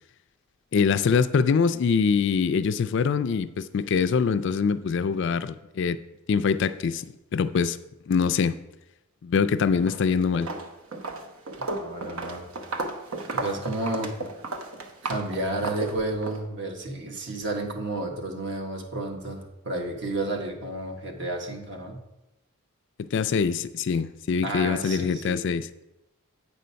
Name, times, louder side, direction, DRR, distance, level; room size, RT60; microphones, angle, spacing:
voice 1, 0.7-6.0 6.3-7.1 7.3-7.8 8.1-8.6 9.2-10.5 23.0-25.7, left 5 dB, 55° left, 0.3 m, -24 dB
Walk footsteps, 9.7-10.0 10.3-16.4, right 2 dB, 75° right, 0.9 m, -34 dB
voice 2, 11.6-12.5 13.3-14.1 15.0-22.0 24.4-25.4, right 2 dB, 55° right, 1.4 m, -31 dB
8.5 x 5.1 x 5.6 m
head